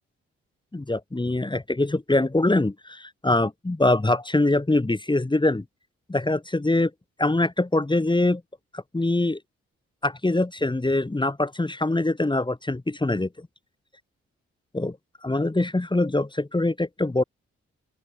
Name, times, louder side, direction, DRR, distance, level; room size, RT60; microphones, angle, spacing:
voice 1, 0.7-5.6 6.1-6.9 7.2-8.4 8.7-9.4 10.0-13.5 14.7-15.0 15.2-17.2, left 2 dB, 15° left, 1.4 m, -23 dB
open air
hypercardioid pair, 40°, 30 cm